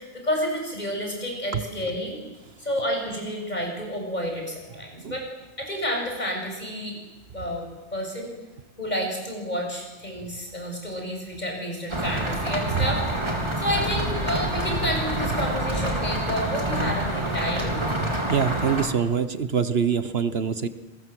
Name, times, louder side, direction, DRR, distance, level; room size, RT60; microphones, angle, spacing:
voice 1, 0.0-2.2 2.6-5.3 5.6-7.0 7.3-7.6 7.9-8.3 8.8-13.0 13.6-17.8, equal, 40° left, 1 dB, 7.2 m, -30 dB
sound 1, 11.9-18.9, right 1 dB, 25° right, 3.6 m, -27 dB
voice 2, 18.3-20.7, right 7 dB, 65° right, 11 dB, 1.4 m, -24 dB
28.0 x 21.5 x 7.8 m, 1.1 s
omnidirectional pair, 1.1 m